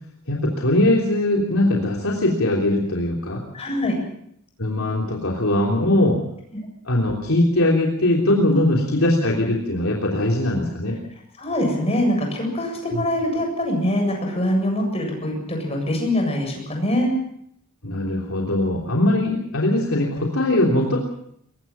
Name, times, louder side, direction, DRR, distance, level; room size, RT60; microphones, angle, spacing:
voice 1, 0.3-3.4 4.6-6.2 6.8-11.0 12.9-13.0 17.8-21.0, left 1 dB, 80° left, -2 dB, 3.3 m, -21 dB
voice 2, 3.5-4.0 8.5-8.6 11.4-17.1, left 1 dB, 30° left, 2 dB, 7.6 m, -23 dB
23.0 x 21.5 x 5.7 m, 0.71 s
head